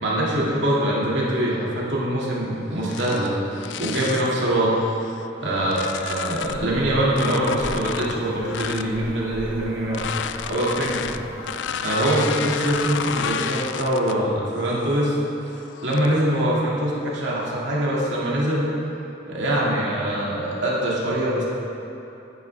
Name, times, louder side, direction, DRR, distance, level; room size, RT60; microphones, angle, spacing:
voice 1, 0.0-3.3 3.8-4.8 5.4-10.0 10.5-11.0 11.8-15.1 15.8-18.7 19.3-21.5, right 1 dB, 65° right, -6 dB, 2.4 m, -23 dB
sound 1, 2.8-4.4 5.0-6.7 7.1-8.9 9.8-14.3 14.7-15.0 15.7-16.2, left 7 dB, 65° left, 0.4 m, -32 dB
sound 2, 6.4-11.6, equal, ahead, 0.9 m, -39 dB
15.5 x 9.5 x 3.5 m, 2.9 s
head